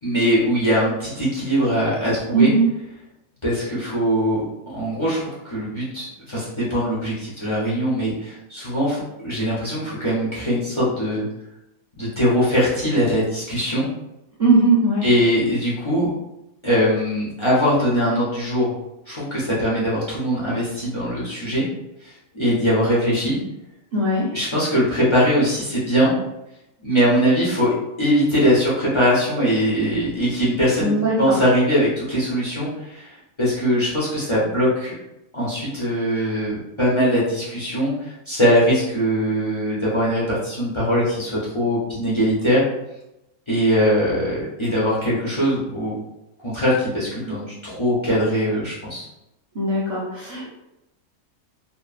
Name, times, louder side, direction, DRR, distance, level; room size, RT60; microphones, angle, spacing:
voice 1, 0.0-2.5 3.4-11.2 12.0-13.9 15.0-16.1 16.6-18.7 19.1-21.6 22.0-23.4 24.3-26.1 26.8-30.9 31.2-33.1 33.4-34.9 35.3-42.6 43.5-45.9 46.4-49.1, equal, 35° left, -7 dB, 0.4 m, -21 dB
voice 2, 2.3-2.6 14.4-15.0 23.9-24.3 30.8-31.4 49.5-50.5, right 2 dB, 50° right, -7 dB, 0.4 m, -19 dB
2.9 x 2.1 x 2.4 m, 0.90 s
omnidirectional pair, 1.5 m